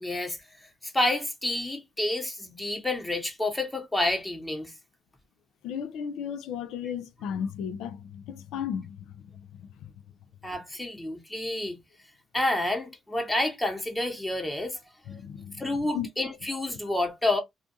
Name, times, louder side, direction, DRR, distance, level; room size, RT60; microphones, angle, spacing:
voice 1, 0.0-0.4 0.8-4.7 10.4-11.8 12.3-14.8 15.1-15.2 15.6-17.4, left 1 dB, 10° left, 1.0 m, -29 dB
voice 2, 5.6-9.9 15.1-16.1, left 8 dB, 90° left, 0.4 m, -35 dB
2.4 x 2.4 x 2.6 m
cardioid pair, 90°, 0 cm